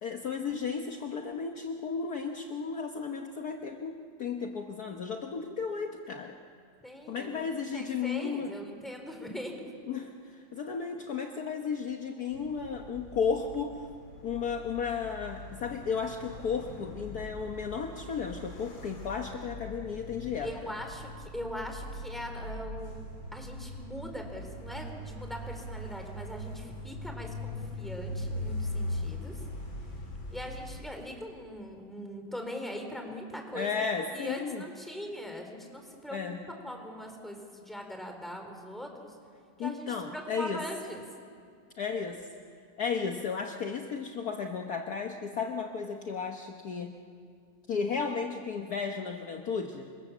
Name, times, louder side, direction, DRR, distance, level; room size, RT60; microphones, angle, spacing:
voice 1, 0.0-6.3 7.1-8.5 9.9-13.9 14.2-20.7 33.5-34.6 36.1-36.4 39.6-40.6 41.8-42.3 42.8-46.9 47.7-49.9, left 5 dB, 55° left, 3 dB, 1.5 m, -34 dB
voice 2, 6.8-7.3 7.5-9.6 20.4-29.4 30.3-33.7 34.1-36.2 36.6-39.2 39.6-39.9 40.1-41.0, equal, ahead, 3 dB, 4.0 m, -41 dB
sound 1, 12.3-30.8, left 1 dB, 90° left, 4.4 m, -41 dB
27.5 x 25.5 x 7.3 m, 2.3 s
omnidirectional pair, 2.1 m